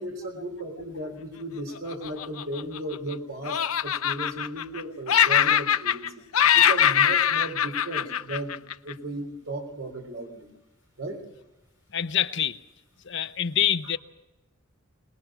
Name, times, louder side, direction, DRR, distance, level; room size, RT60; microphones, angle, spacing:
voice 1, 0.0-6.2 6.5-8.6 8.8-10.5 11.0-11.2, right 1 dB, 65° right, 2 dB, 3.7 m, -35 dB
Laughter, 1.9-3.1 3.4-4.8 5.1-6.1 6.3-8.9, left 9 dB, 85° left, 0.7 m, -22 dB
voice 2, 11.9-12.6 13.0-14.0, left 10 dB, 55° left, 10 dB, 0.8 m, -26 dB
23.5 x 20.5 x 6.2 m, 0.98 s
head